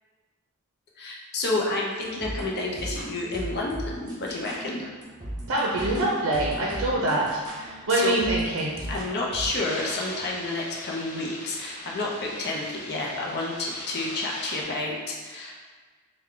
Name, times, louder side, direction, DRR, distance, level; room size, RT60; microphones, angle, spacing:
voice 1, 1.0-4.9 7.9-8.1 8.9-15.0 15.2-15.6, left 2 dB, 50° left, -2 dB, 0.6 m, -30 dB
sound 1, 2.0-9.5, right 1 dB, 20° right, 0.7 m, -38 dB
voice 2, 5.5-8.7, right 1 dB, 65° right, -4 dB, 0.5 m, -25 dB
sound 2, 9.6-14.6, left 2 dB, 90° left, 0.7 m, -40 dB
3.4 x 2.2 x 3.7 m, 1.4 s
head